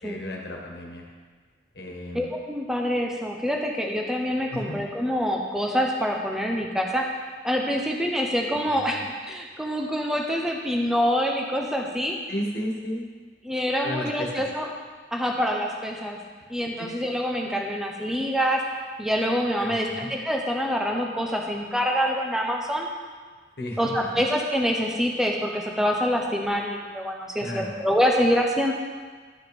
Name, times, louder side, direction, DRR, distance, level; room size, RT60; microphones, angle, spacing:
voice 1, 0.0-1.0 1.7-2.3 4.5-4.8 8.5-9.1 12.3-13.0 13.8-14.4 16.8-16.9 19.6-20.1 23.6-23.8 27.4-27.7, left 1 dB, 65° left, 0 dB, 1.6 m, -34 dB
voice 2, 2.1-7.1 7.4-12.2 13.4-14.7 15.1-16.2 16.5-18.6 19.0-22.9 23.8-28.7, equal, 5° right, 0 dB, 0.9 m, -26 dB
12.0 x 5.5 x 5.4 m, 1.5 s
head